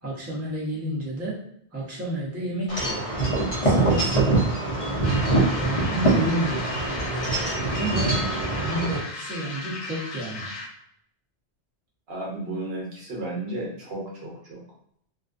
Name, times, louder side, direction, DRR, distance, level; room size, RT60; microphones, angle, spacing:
voice 1, 0.0-1.4 1.7-3.1 3.6-4.3 4.7-8.2 8.6-10.5, right 1 dB, 15° right, -6 dB, 0.7 m, -31 dB
Wind chime / Wind, 2.7-9.0, right 2 dB, 40° left, 0.6 m, -24 dB
sound 1, 5.0-10.8, left 2 dB, 90° left, 0.9 m, -36 dB
voice 2, 12.1-14.6, right 1 dB, 65° right, -4 dB, 1.1 m, -33 dB
2.5 x 2.2 x 2.4 m, 0.67 s
omnidirectional pair, 1.1 m